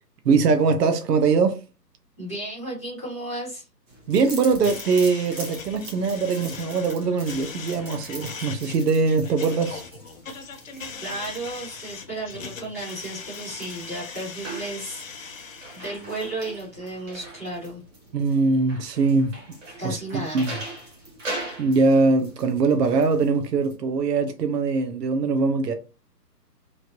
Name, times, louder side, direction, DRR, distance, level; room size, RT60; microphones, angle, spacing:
voice 1, 0.3-1.6 4.1-9.8 18.1-19.3 19.8-20.0 20.3-20.5 21.6-25.7, right 4 dB, 70° right, 0.7 m, -22 dB
voice 2, 2.2-3.7 11.0-15.0 15.7-17.8 19.8-20.6, right 2 dB, 10° right, 0.7 m, -33 dB
sound 1, 3.9-23.8, right 2 dB, 50° right, 1.2 m, -41 dB
sound 2, 4.6-16.2, left 5 dB, 55° left, 0.6 m, -40 dB
3.1 x 2.5 x 2.8 m
hypercardioid pair, 170°, 49 cm